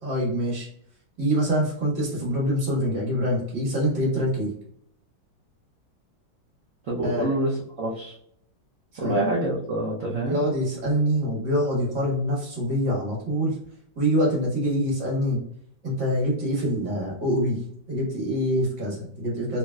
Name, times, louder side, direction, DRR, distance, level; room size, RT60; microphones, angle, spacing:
voice 1, 0.0-0.7 1.2-4.5 7.0-7.3 8.9-9.2 10.2-13.6 14.0-15.4 15.8-17.6 17.9-19.6, equal, 55° right, -4 dB, 1.9 m, -25 dB
voice 2, 6.9-8.2 9.0-10.4, right 1 dB, 80° right, -4 dB, 0.7 m, -26 dB
4.3 x 2.0 x 2.2 m, 0.67 s
omnidirectional pair, 2.2 m